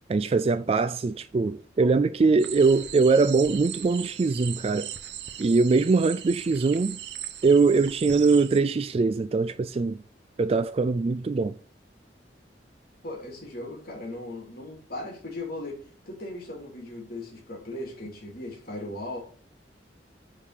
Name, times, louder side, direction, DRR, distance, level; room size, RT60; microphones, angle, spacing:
voice 1, 0.1-4.9 5.4-7.0 7.4-10.0 10.4-11.6, right 4 dB, 35° right, 0.3 m, -22 dB
sound 1, 2.4-8.6, right 10 dB, 70° right, 0.7 m, -39 dB
voice 2, 13.0-15.8 16.1-19.2, left 1 dB, 55° left, 2.7 m, -37 dB
9.9 x 3.7 x 6.6 m
head